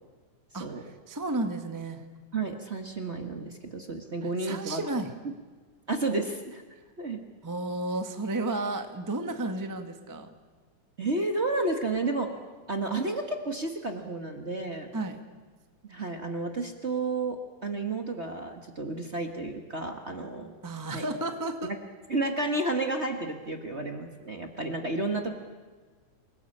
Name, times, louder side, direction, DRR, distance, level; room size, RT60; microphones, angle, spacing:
voice 1, 0.5-2.0 4.4-5.1 7.4-10.3 14.9-15.2 20.6-21.7, right 2 dB, 15° right, 6 dB, 0.6 m, -32 dB
voice 2, 2.3-4.8 5.2-5.3 5.9-6.6 7.0-7.2 11.0-12.3 12.7-14.9 15.9-20.5 20.9-21.1 21.6-21.7 22.1-25.4, right 2 dB, 35° right, 4 dB, 1.1 m, -31 dB
27.5 x 18.5 x 8.6 m, 1.4 s
omnidirectional pair, 3.5 m